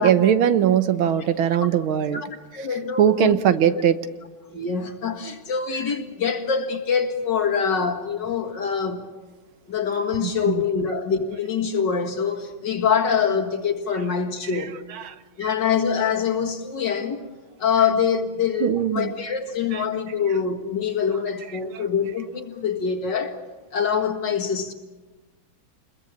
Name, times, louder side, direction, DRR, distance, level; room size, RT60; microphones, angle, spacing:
voice 1, 0.0-2.2 3.0-4.0 10.2-10.6 14.5-14.6 14.9-15.2 18.6-19.1 19.7-19.8 21.7-21.8, right 9 dB, 80° right, 1.8 m, -20 dB
voice 2, 2.5-3.4 4.5-9.1 9.7-14.8 15.4-17.3 17.6-23.4 23.7-24.7, left 6 dB, 60° left, 2.4 m, -24 dB
28.0 x 21.5 x 7.3 m
omnidirectional pair, 2.2 m